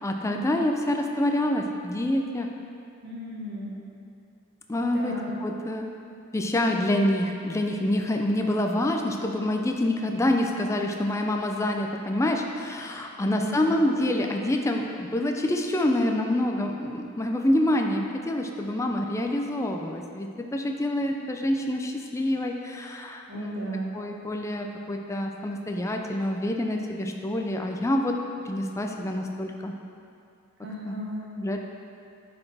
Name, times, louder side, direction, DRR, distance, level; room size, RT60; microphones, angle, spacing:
voice 1, 0.0-2.5 4.7-5.9 6.3-23.7 23.9-28.2 28.5-29.7 30.9-31.0 31.4-31.7, left 1 dB, 15° left, 2 dB, 0.3 m, -27 dB
voice 2, 3.0-3.8 4.8-5.4 13.2-13.8 23.3-23.9 30.6-31.3, right 1 dB, 50° right, -3 dB, 1.1 m, -36 dB
9.6 x 4.2 x 3.3 m, 2.5 s
head